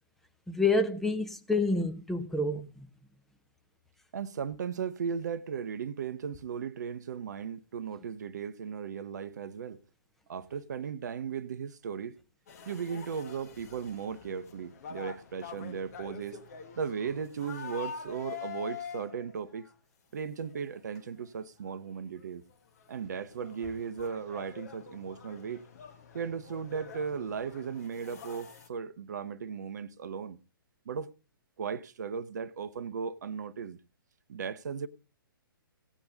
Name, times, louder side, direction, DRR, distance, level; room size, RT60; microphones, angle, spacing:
voice 1, 0.5-2.9, left 2 dB, ahead, 0.8 m, -28 dB
voice 2, 4.1-9.8 10.3-12.2 12.7-16.4 16.8-19.7 20.1-22.4 22.9-25.6 26.1-30.4 30.8-31.1 31.6-33.8 34.3-34.9, right 6 dB, 50° right, 0.8 m, -36 dB
sound 1, 12.5-19.7 20.4-20.6 20.9-21.0 21.7-21.8 22.2-22.3 22.5-28.7, left 7 dB, 45° left, 1.6 m, -46 dB
17.0 x 8.7 x 3.9 m
figure-of-eight pair, 125°, 12 cm